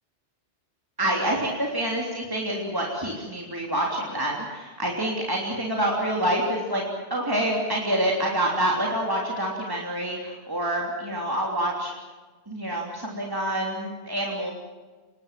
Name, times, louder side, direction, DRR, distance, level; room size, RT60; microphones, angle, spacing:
voice 1, 1.0-6.8 7.1-11.9 12.5-14.5, right 1 dB, 20° right, -2 dB, 3.3 m, -27 dB
26.0 x 21.5 x 7.6 m, 1.3 s
omnidirectional pair, 1.2 m